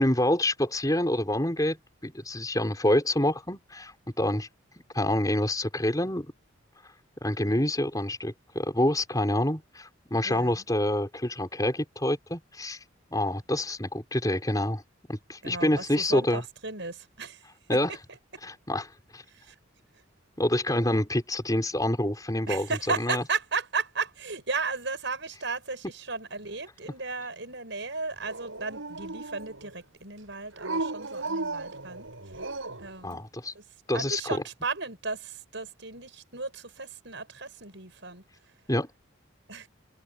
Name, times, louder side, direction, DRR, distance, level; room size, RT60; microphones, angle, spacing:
voice 1, 0.0-1.8 2.0-3.9 4.2-4.5 4.9-6.3 7.2-12.8 13.1-14.8 15.1-16.4 17.7-17.9 18.4-19.2 20.4-22.7 22.9-23.2 33.0-33.5 33.9-34.4 38.7-38.9, left 1 dB, 20° left, 4.9 m, -27 dB
voice 2, 10.2-10.6 15.4-17.4 17.7-17.8 19.3-19.5 22.5-32.1 32.8-33.2 33.5-33.6 33.9-38.2 39.5-39.7, right 4 dB, 60° right, 7.4 m, -35 dB
Dog, 28.2-29.7 30.6-32.9, right 3 dB, 85° right, 6.2 m, -35 dB
head